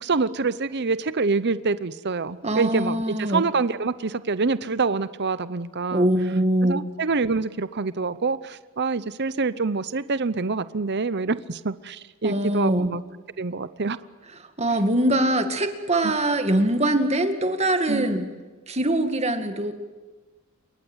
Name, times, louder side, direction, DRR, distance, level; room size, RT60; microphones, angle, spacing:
voice 1, 0.0-6.1 6.6-13.0 13.4-14.0 16.0-16.1 17.9-18.1, right 4 dB, 50° right, 15 dB, 0.8 m, -26 dB
voice 2, 2.4-3.5 5.9-6.9 12.2-12.9 14.6-18.3 18.7-19.7, right 1 dB, 30° right, 7 dB, 2.1 m, -23 dB
27.5 x 23.5 x 8.0 m, 1.3 s
head